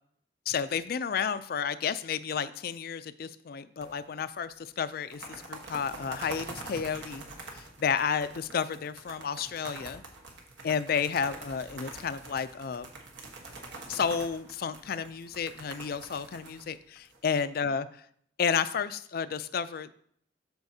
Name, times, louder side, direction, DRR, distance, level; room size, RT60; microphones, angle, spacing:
voice 1, 0.5-5.2 5.5-7.2 7.8-10.0 10.6-12.9 13.9-17.9 18.4-19.9, left 6 dB, 55° left, 14 dB, 0.4 m, -31 dB
sound 1, 3.8-4.5 4.9-17.4, right 3 dB, 80° right, 1.3 m, -45 dB
12.5 x 4.3 x 2.8 m, 0.63 s
head